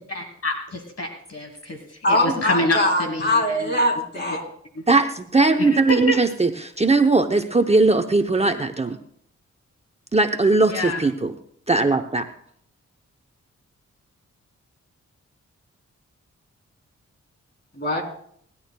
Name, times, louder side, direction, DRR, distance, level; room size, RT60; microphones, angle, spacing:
voice 1, 0.1-3.2 3.5-3.7 4.7-4.8 5.6-6.2 10.7-11.0, left 1 dB, 55° left, 5 dB, 1.6 m, -27 dB
voice 2, 2.0-4.4 17.8-18.0, left 1 dB, 35° left, 1 dB, 3.7 m, -22 dB
voice 3, 4.9-9.0 10.1-11.3 11.7-12.3, right 3 dB, 20° right, 6 dB, 0.7 m, -19 dB
27.5 x 11.0 x 2.2 m, 0.66 s
cardioid pair, 70°, 29 cm